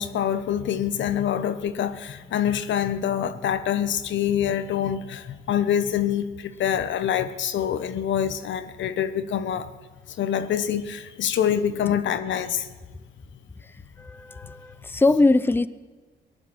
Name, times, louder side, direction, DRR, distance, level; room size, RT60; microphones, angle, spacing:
voice 1, 0.0-9.7 10.2-12.7, left 9 dB, 70° left, 1.0 m, -25 dB
voice 2, 14.0-15.7, left 2 dB, 10° left, 0.6 m, -21 dB
18.0 x 10.0 x 7.7 m
cardioid pair, 90°, 20 cm